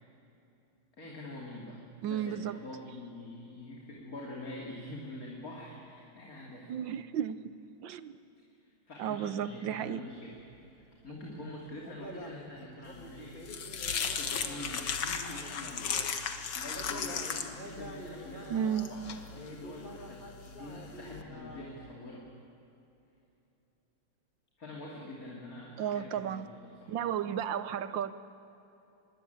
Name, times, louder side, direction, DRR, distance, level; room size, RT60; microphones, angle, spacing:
voice 1, 1.0-6.7 8.5-13.4 13.9-22.3 24.6-27.0, left 1 dB, 40° left, -2 dB, 3.4 m, -46 dB
voice 2, 2.0-2.6 6.7-7.5 7.8-8.1 9.0-10.0 18.5-18.9 25.8-26.5 26.9-28.1, right 9 dB, 65° right, 13 dB, 1.4 m, -33 dB
sound 1, 10.1-16.2 16.6-21.9, left 1 dB, 25° left, 2.3 m, -48 dB
sound 2, 13.0-21.2, left 6 dB, 65° left, 2.2 m, -37 dB
25.5 x 21.5 x 9.6 m, 2.9 s
omnidirectional pair, 2.4 m